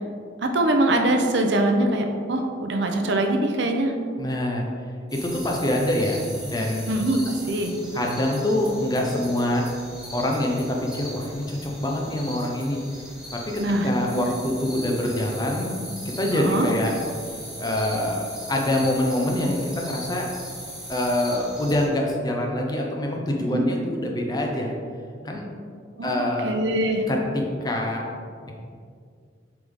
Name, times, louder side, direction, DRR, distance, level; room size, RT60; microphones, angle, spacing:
voice 1, 0.4-3.9 6.9-7.8 13.6-14.3 16.3-16.7 23.5-23.6 26.0-27.0, right 1 dB, 70° right, 4 dB, 0.6 m, -23 dB
voice 2, 4.2-4.7 5.1-6.9 7.9-9.6 10.1-12.8 13.3-15.8 16.0-16.9 17.2-20.3 20.9-24.8 25.2-25.5 26.0-26.5 27.1-28.1 28.4-28.5, left 1 dB, 20° left, 0 dB, 0.7 m, -25 dB
sound 1, 5.1-21.9, equal, 5° right, 1.2 m, -39 dB
7.8 x 3.5 x 3.7 m, 2.2 s
head